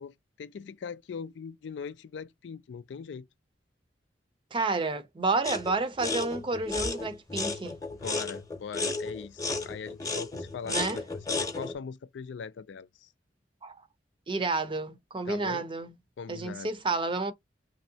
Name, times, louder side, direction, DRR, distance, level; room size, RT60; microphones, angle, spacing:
voice 1, 0.0-3.3 8.0-13.1 15.3-15.7 16.2-16.7, left 6 dB, 90° left, 0.4 m, -41 dB
voice 2, 4.5-7.7 10.7-11.0 13.6-13.8 14.3-15.9 16.3-17.3, right 3 dB, 30° right, 0.5 m, -30 dB
sound 1, 5.4-5.7 6.0-11.7, left 3 dB, 20° left, 0.8 m, -33 dB
3.1 x 2.7 x 2.7 m
head